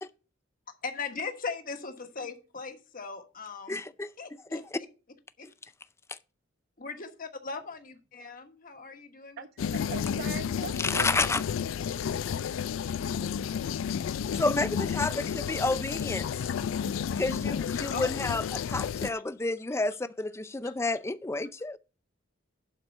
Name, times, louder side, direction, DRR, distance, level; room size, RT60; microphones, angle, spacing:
voice 1, 0.8-3.8 4.2-4.6 5.4-5.5 6.8-9.5 9.8-10.3 17.9-18.2 20.6-20.7, left 4 dB, 45° left, 1.3 m, -39 dB
voice 2, 3.7-4.1 4.5-4.6 10.8-11.4 14.3-16.5 17.2-18.4 18.7-21.8, left 3 dB, 15° left, 0.4 m, -30 dB
voice 3, 9.4-11.1 13.1-13.6, right 6 dB, 55° right, 0.4 m, -42 dB
sound 1, 9.6-19.1, left 7 dB, 75° left, 0.3 m, -31 dB
11.5 x 4.6 x 5.3 m
head